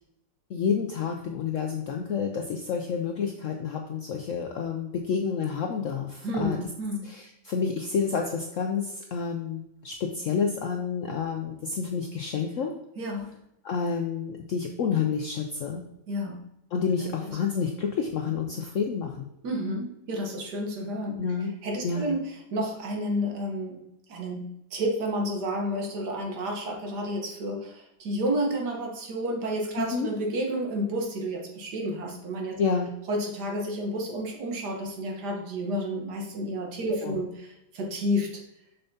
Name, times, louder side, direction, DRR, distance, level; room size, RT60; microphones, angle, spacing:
voice 1, 0.5-6.6 7.0-12.7 13.6-15.8 16.7-19.3 21.2-21.5 21.8-22.1 29.8-30.1 32.6-32.9 37.0-37.2, left 6 dB, 70° left, 3 dB, 0.7 m, -29 dB
voice 2, 6.2-7.1 13.0-13.3 16.1-16.5 17.0-17.4 19.4-21.2 21.6-32.6 33.1-38.4, equal, 70° right, 1 dB, 1.7 m, -31 dB
6.7 x 5.7 x 2.7 m, 0.82 s
omnidirectional pair, 1.9 m